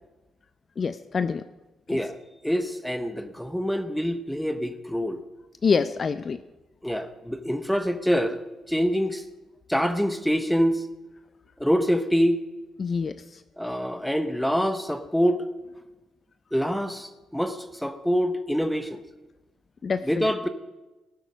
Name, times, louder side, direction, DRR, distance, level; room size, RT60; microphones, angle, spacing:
voice 1, 0.8-1.4 1.9-2.0 5.6-6.4 12.8-13.1 19.8-20.3, left 5 dB, 40° left, 12 dB, 0.5 m, -26 dB
voice 2, 2.4-5.2 6.8-8.4 8.7-9.2 9.7-10.8 11.6-12.4 13.6-15.4 16.5-19.0 20.0-20.5, equal, ahead, 10 dB, 0.9 m, -25 dB
18.0 x 8.0 x 5.2 m, 1.1 s
cardioid pair, 90°, 0 cm